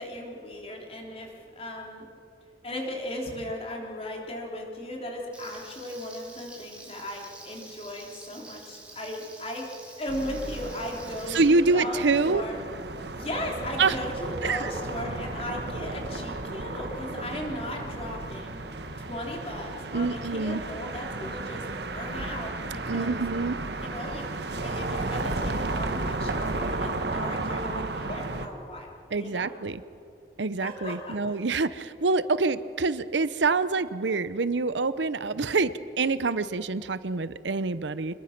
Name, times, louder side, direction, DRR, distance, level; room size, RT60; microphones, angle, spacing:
voice 1, 0.0-2.1 2.6-12.6 13.1-18.6 19.0-23.2 23.8-24.2 24.6-28.9 29.2-29.5 30.6-31.4, left 1 dB, 35° left, 0 dB, 3.5 m, -37 dB
Frying (food), 5.3-11.4, right 2 dB, 5° right, 3.9 m, -48 dB
sound 1, 10.1-28.5, right 2 dB, 70° right, 1.5 m, -34 dB
voice 2, 11.3-12.4 13.8-14.0 14.4-14.7 19.9-20.6 22.9-23.6 29.1-29.8 30.4-35.7 36.0-38.1, right 3 dB, 90° right, 14 dB, 0.8 m, -26 dB
27.0 x 21.0 x 6.0 m, 2.6 s
head